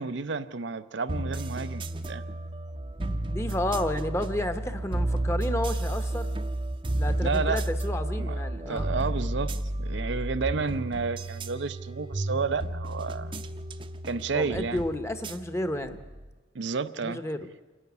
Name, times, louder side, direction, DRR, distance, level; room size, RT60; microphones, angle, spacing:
voice 1, 0.0-2.2 7.2-7.6 8.2-8.4 8.7-13.3 14.0-14.8 16.5-17.2, right 4 dB, 70° right, 12 dB, 0.6 m, -31 dB
sound 1, 1.1-16.3, right 1 dB, 25° right, 0.6 m, -32 dB
voice 2, 3.3-6.3 6.9-8.9 14.3-16.0 17.0-17.5, left 1 dB, 15° left, 9 dB, 0.9 m, -31 dB
27.5 x 11.0 x 9.4 m, 1.3 s
head